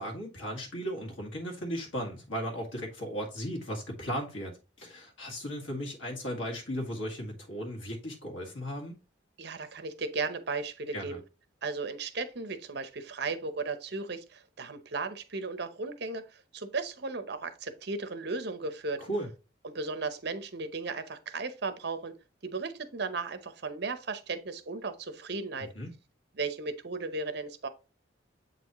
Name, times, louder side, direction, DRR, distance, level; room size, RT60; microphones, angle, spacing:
voice 1, 0.0-4.5 4.8-9.0 10.9-11.2 19.0-19.3 25.8-25.9, equal, 85° left, 2.1 m, -36 dB
voice 2, 9.4-11.2 11.6-19.0 19.6-22.1 22.4-25.7 26.4-27.7, right 3 dB, 55° right, 0.7 m, -35 dB
7.7 x 4.2 x 3.0 m
head